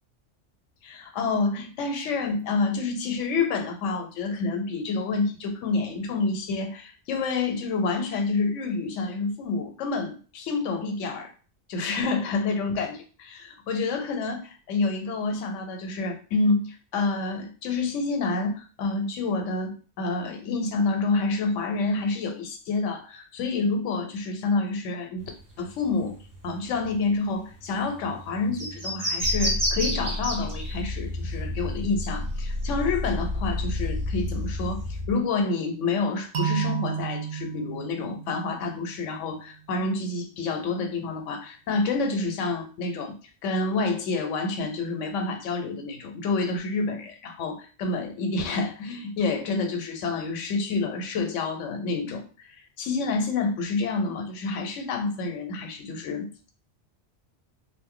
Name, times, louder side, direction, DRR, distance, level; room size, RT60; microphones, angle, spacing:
voice 1, 0.8-11.3 11.7-25.3 25.6-26.2 26.4-34.8 35.1-43.1 43.4-52.2 52.8-56.5, left 3 dB, 85° left, 5 dB, 1.0 m, -28 dB
sound 1, 25.2-32.9 33.2-34.9, equal, 20° right, 0.6 m, -32 dB
sound 2, 29.2-35.1, left 1 dB, 55° left, 0.7 m, -30 dB
sound 3, 36.3-39.3, right 8 dB, 65° right, 0.7 m, -32 dB
2.6 x 2.0 x 3.6 m, 0.37 s
omnidirectional pair, 1.2 m